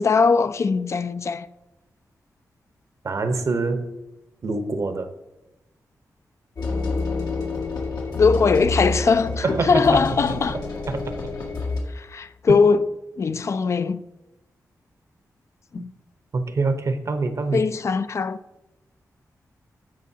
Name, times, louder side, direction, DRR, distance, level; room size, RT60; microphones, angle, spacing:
voice 1, 0.0-1.5 8.2-10.6 11.9-12.9 13.2-14.0 15.7-15.8 17.5-18.4, left 5 dB, 50° left, 0.4 m, -20 dB
voice 2, 3.0-4.0 4.4-5.1 9.4-10.2 10.9-11.2 15.8-15.9 16.3-17.6, right 3 dB, 50° right, 0.8 m, -25 dB
sound 1, 6.6-11.8, left 3 dB, 90° left, 1.9 m, -28 dB
15.0 x 5.1 x 2.8 m
wide cardioid pair, 100°, 6 cm